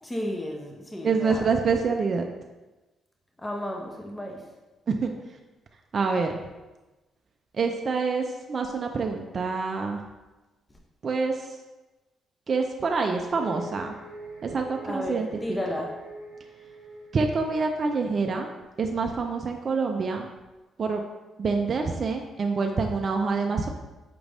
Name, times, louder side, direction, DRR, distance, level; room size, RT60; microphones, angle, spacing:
voice 1, 0.0-1.5 3.4-4.4 10.7-10.8 14.8-15.9, left 1 dB, 15° left, 0 dB, 0.5 m, -33 dB
voice 2, 1.0-2.3 4.9-5.1 5.9-6.3 7.5-10.0 11.0-11.5 12.5-13.9 14.4-15.3 17.1-18.5 18.8-20.3 20.8-21.0 21.4-23.7, right 4 dB, 45° right, 3 dB, 0.3 m, -26 dB
sound 1, 13.3-18.3, right 1 dB, 55° left, 1.5 m, -44 dB
5.1 x 2.5 x 3.3 m, 1.1 s
cardioid pair, 90°, 0 cm